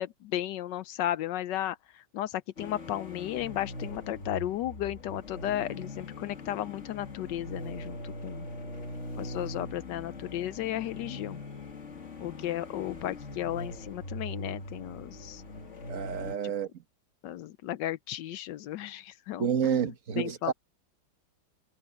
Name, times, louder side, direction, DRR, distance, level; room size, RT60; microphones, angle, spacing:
voice 1, 0.0-8.5 9.2-11.4 12.2-15.4 16.4-16.5 17.2-20.5, left 13 dB, 75° left, 1.1 m, -34 dB
sound 1, 2.6-16.3, left 2 dB, 35° left, 2.2 m, -41 dB
voice 2, 15.9-16.7 19.4-20.5, right 7 dB, 40° right, 1.5 m, -29 dB
omnidirectional pair, 2.3 m